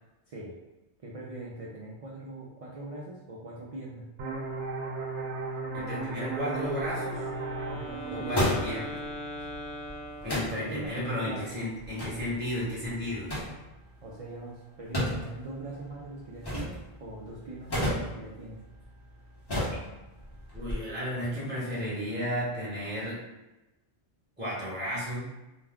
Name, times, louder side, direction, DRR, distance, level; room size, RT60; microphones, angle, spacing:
voice 1, 0.3-0.6 1.0-4.1 7.7-8.7 10.6-11.5 14.0-18.6, right 2 dB, 60° right, -5 dB, 0.3 m, -41 dB
sound 1, 4.2-9.6, right 3 dB, 85° right, 0.9 m, -36 dB
voice 2, 5.7-7.2 8.1-8.9 10.2-13.3 20.5-23.2 24.4-25.3, equal, 10° right, -9 dB, 1.0 m, -33 dB
sound 2, 6.6-20.7, equal, 25° left, 0.8 m, -36 dB
Wind instrument woodwind instrument, 6.9-11.0, left 1 dB, 80° left, 0.9 m, -41 dB
2.5 x 2.2 x 3.4 m, 1.0 s
omnidirectional pair, 1.2 m